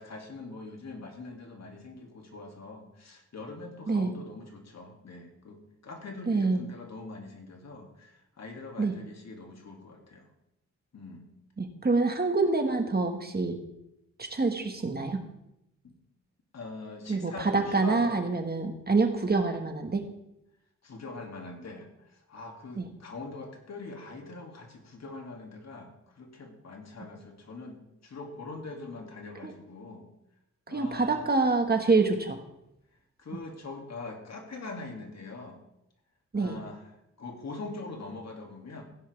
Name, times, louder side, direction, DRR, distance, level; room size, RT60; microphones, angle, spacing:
voice 1, 0.0-10.3 10.9-11.3 15.8-15.9 16.5-18.2 20.8-30.0 30.7-31.3 33.2-35.6 36.3-36.9 37.2-38.8, left 3 dB, 60° left, 2 dB, 2.4 m, -43 dB
voice 2, 6.3-6.6 8.8-8.9 11.6-13.6 14.2-15.2 17.1-20.0 22.8-22.9 29.4-29.5 30.7-32.4 36.3-36.6, right 3 dB, 30° right, 5 dB, 1.5 m, -26 dB
16.0 x 10.0 x 3.4 m, 0.84 s
cardioid pair, 85°, 30 cm